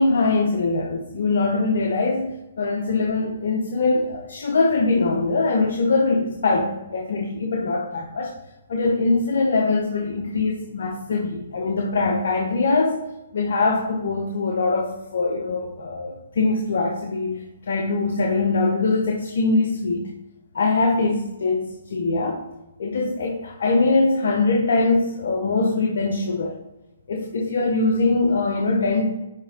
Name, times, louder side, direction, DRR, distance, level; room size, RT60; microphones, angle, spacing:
voice 1, 0.0-8.3 8.7-13.0 13.3-20.1 20.5-22.4 22.8-26.6 27.1-29.1, left 3 dB, 65° left, 0 dB, 1.0 m, -22 dB
10.5 x 3.5 x 3.7 m, 0.99 s
hypercardioid pair, 145°, 0 cm